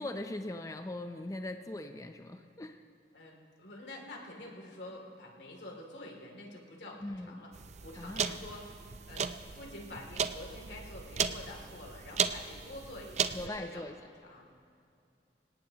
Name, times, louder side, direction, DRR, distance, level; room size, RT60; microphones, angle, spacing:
voice 1, 0.0-2.8 7.0-7.4 7.9-8.4 13.3-14.0, left 1 dB, 20° left, 6 dB, 0.5 m, -40 dB
voice 2, 3.1-7.5 7.8-13.8 14.2-14.4, left 1 dB, 85° left, 0 dB, 2.7 m, -47 dB
sound 1, 7.5-13.5, right 6 dB, 40° right, 0.5 m, -36 dB
25.5 x 18.0 x 2.9 m, 2.5 s
head